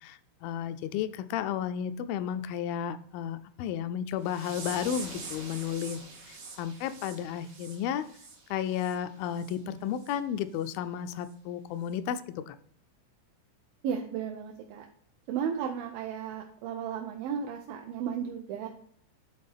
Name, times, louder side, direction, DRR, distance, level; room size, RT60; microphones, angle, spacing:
voice 1, 0.0-6.0 6.6-8.0 8.5-12.2 12.5-12.6, left 9 dB, 90° left, 11 dB, 2.3 m, -33 dB
sound 1, 4.2-9.0 9.3-9.6 10.0-10.1 10.6-10.7 11.2-11.3, right 4 dB, 65° right, 1.0 m, -45 dB
voice 2, 13.8-14.9 15.3-18.7, right 7 dB, 85° right, 2 dB, 2.4 m, -34 dB
10.5 x 3.7 x 3.4 m, 0.63 s
omnidirectional pair, 4.1 m